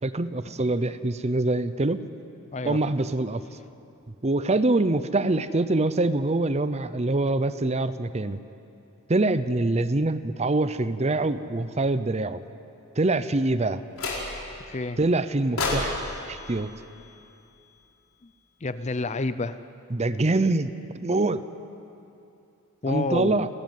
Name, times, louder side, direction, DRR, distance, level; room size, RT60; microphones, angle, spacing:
voice 1, 0.0-2.0 2.7-3.4 4.2-8.4 9.1-12.4 13.0-13.8 15.0-15.9 16.3-16.7 19.9-21.4 22.9-23.5, right 2 dB, 30° right, 13 dB, 0.6 m, -24 dB
voice 2, 2.5-2.8 14.7-15.0 18.2-18.3 18.6-19.6 22.8-23.4, left 3 dB, 30° left, 13 dB, 0.5 m, -29 dB
sound 1, 14.0-14.6 15.6-17.8, left 2 dB, 65° left, 4.7 m, -32 dB
29.5 x 12.5 x 9.3 m, 2.7 s
head